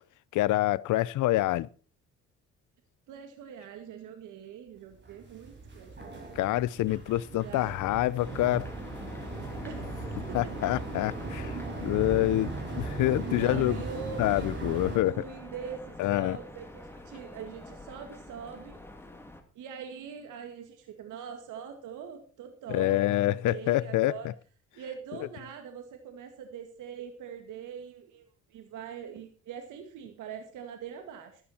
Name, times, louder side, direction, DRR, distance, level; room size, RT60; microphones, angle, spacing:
voice 1, 0.3-1.7 6.4-8.7 10.3-13.8 14.2-15.1 16.0-16.4 22.7-24.1, left 16 dB, 85° left, 0.6 m, -27 dB
voice 2, 3.1-6.4 7.3-7.8 9.6-10.4 10.9-11.0 13.3-14.5 15.0-18.8 19.5-24.3 24.7-31.4, right 7 dB, 85° right, 2.1 m, -43 dB
sound 1, 5.0-15.0, right 3 dB, 35° right, 5.9 m, -38 dB
sound 2, 8.2-19.4, equal, 10° left, 2.6 m, -44 dB
13.0 x 13.0 x 4.3 m
cardioid pair, 90°, 30 cm